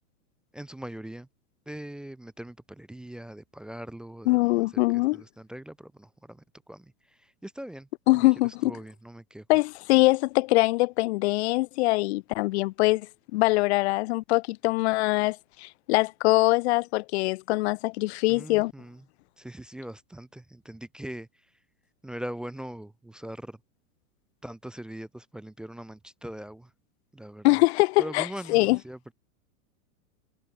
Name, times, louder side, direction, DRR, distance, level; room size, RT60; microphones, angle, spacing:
voice 1, 0.5-1.3 1.7-9.5 18.3-19.1 19.4-21.5 22.0-23.6 24.4-26.7 27.1-27.6 28.0-29.1, right 1 dB, ahead, 0.4 m, -41 dB
voice 2, 4.3-5.2 8.1-8.7 9.5-13.1 13.3-18.7 27.4-28.8, left 22 dB, 45° left, 0.6 m, -23 dB
hypercardioid pair, 135°, 45 cm